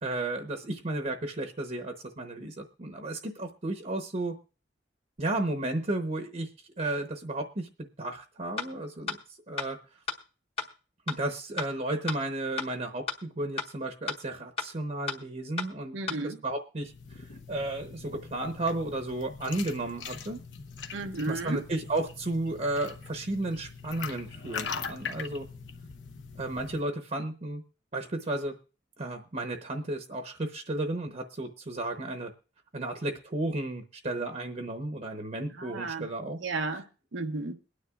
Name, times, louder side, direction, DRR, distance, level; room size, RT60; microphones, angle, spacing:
voice 1, 0.0-4.4 5.2-6.5 6.8-7.7 8.0-9.2 9.5-9.8 11.1-20.4 21.3-25.5 26.4-27.6 27.9-28.5 29.0-32.3 32.7-36.4, right 2 dB, 40° right, 0.9 m, -33 dB
sound 1, 8.6-8.7 9.1-9.2 9.6-9.7 10.1-10.2 10.6-10.7 11.1-11.2 11.6-11.7 12.1-12.2 12.6-12.7 13.1-13.2 13.6-13.7 14.1-14.2 14.6-14.7 15.1-15.2 15.6-15.7 16.1-16.2, left 4 dB, 30° left, 1.0 m, -32 dB
voice 2, 15.9-16.4 20.9-21.6 35.6-36.1 36.4-36.8 37.1-37.6, right 3 dB, 85° right, 0.9 m, -33 dB
sound 2, 16.8-26.8, left 6 dB, 75° left, 0.9 m, -42 dB
22.5 x 9.7 x 2.4 m
head